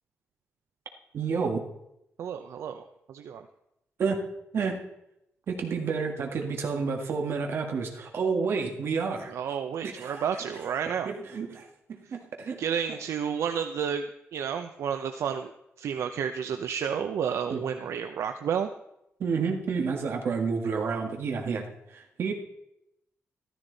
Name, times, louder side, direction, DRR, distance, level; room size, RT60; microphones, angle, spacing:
voice 1, 1.1-1.7 4.0-4.2 4.5-4.8 5.5-9.3 9.8-10.2 11.1-11.7 12.1-12.6 17.5-17.6 19.2-22.3, right 5 dB, 55° right, 2 dB, 1.9 m, -30 dB
voice 2, 2.2-2.8 3.1-3.5 9.3-11.1 12.6-15.5 15.8-18.7, right 7 dB, 80° right, 7 dB, 0.7 m, -31 dB
13.5 x 13.5 x 4.0 m, 0.83 s
wide cardioid pair, 170°, 5 cm